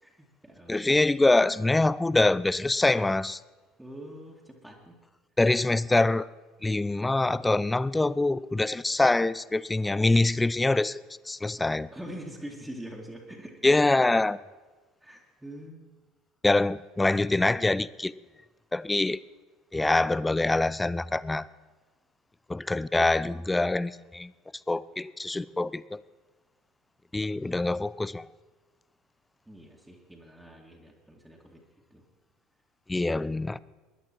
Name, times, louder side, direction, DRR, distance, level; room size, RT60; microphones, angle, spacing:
voice 1, 0.0-0.9 3.8-4.9 11.6-13.6 15.0-15.9 29.5-31.6 31.9-32.0, equal, 5° right, -2 dB, 2.2 m, -44 dB
voice 2, 0.7-3.4 5.4-6.3 6.6-11.9 13.6-14.4 16.4-18.1 18.7-19.2 19.7-21.5 22.5-24.3 24.7-26.0 27.1-28.3 32.9-33.6, left 2 dB, 10° left, 19 dB, 0.4 m, -25 dB
20.5 x 11.0 x 4.5 m, 1.3 s
figure-of-eight pair, 65°, 0 cm